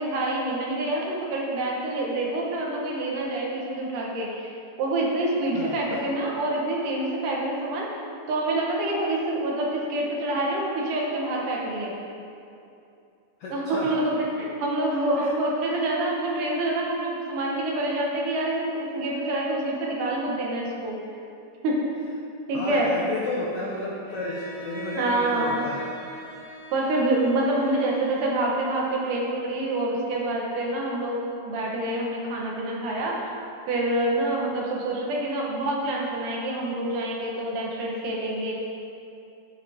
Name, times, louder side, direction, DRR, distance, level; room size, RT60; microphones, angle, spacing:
voice 1, 0.0-4.5 4.8-7.9 8.3-11.9 13.5-21.0 21.6-21.8 22.5-22.9 25.0-25.6 26.7-33.4 33.7-38.5, right 1 dB, 80° right, -2 dB, 2.8 m, -27 dB
voice 2, 5.5-6.0 13.4-13.9 15.2-15.3 22.5-25.8 27.8-27.9, left 2 dB, 75° left, -4 dB, 1.4 m, -32 dB
Bowed string instrument, 24.0-29.1, right 3 dB, 25° right, 1.0 m, -41 dB
10.5 x 7.4 x 3.6 m, 2.6 s
omnidirectional pair, 3.7 m